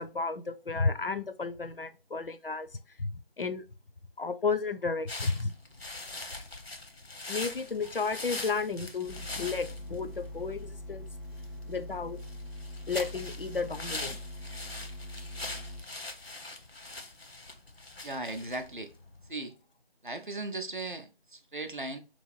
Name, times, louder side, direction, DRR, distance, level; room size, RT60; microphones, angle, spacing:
voice 1, 0.0-2.7 3.0-3.6 4.2-5.5 7.3-11.1 11.7-12.2 12.9-14.2, left 4 dB, 65° left, 0.4 m, -33 dB
sound 1, 5.1-19.3, left 2 dB, 85° left, 0.8 m, -42 dB
sound 2, 9.1-15.8, left 1 dB, ahead, 0.4 m, -43 dB
voice 2, 18.0-18.9 19.3-19.5 20.0-22.0, right 2 dB, 55° right, 0.5 m, -37 dB
3.0 x 2.6 x 2.9 m
figure-of-eight pair, 175°, 30 cm